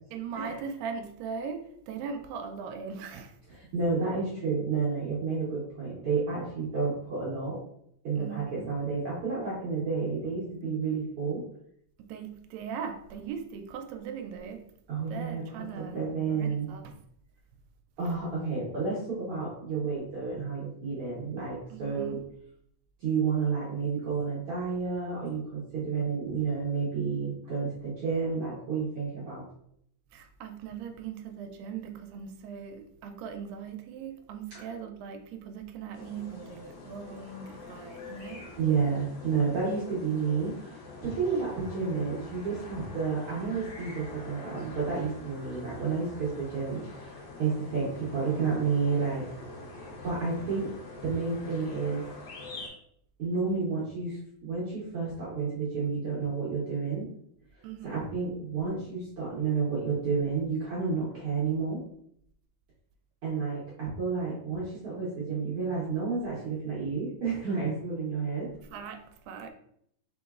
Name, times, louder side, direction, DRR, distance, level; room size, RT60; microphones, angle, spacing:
voice 1, 0.1-3.4 8.2-8.8 12.0-14.7 15.1-17.0 21.7-22.2 30.1-38.5 57.6-58.1 68.6-69.5, right 6 dB, 85° right, 6 dB, 2.2 m, -40 dB
voice 2, 3.5-7.6 8.0-11.4 14.9-16.7 18.0-22.2 23.0-29.4 38.6-49.3 50.0-50.7 51.0-52.0 53.2-57.1 57.5-61.8 63.2-68.5, right 5 dB, 65° right, -7 dB, 1.4 m, -31 dB
sound 1, 35.9-52.7, left 2 dB, 60° left, 1.6 m, -45 dB
5.0 x 3.8 x 2.4 m, 0.70 s
omnidirectional pair, 4.0 m